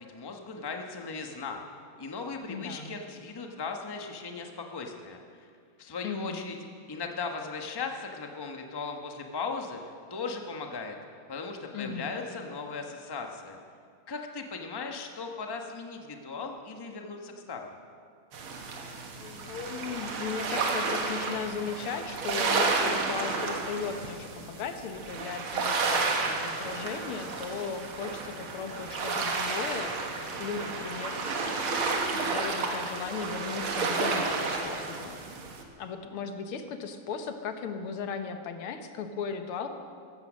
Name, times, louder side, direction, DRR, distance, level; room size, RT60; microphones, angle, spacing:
voice 1, 0.0-1.6 2.0-5.2 5.8-6.5 6.9-9.8 10.1-11.0 11.3-13.6 14.1-17.8, left 4 dB, 15° left, 3 dB, 0.8 m, -37 dB
voice 2, 2.5-3.0 6.0-6.4 11.7-12.1 19.2-31.2 32.1-35.2 35.8-39.7, left 5 dB, 85° left, 7 dB, 2.0 m, -37 dB
sound 1, 18.3-35.6, right 4 dB, 75° right, 2.3 m, -31 dB
15.5 x 14.5 x 6.3 m, 2.2 s
omnidirectional pair, 2.3 m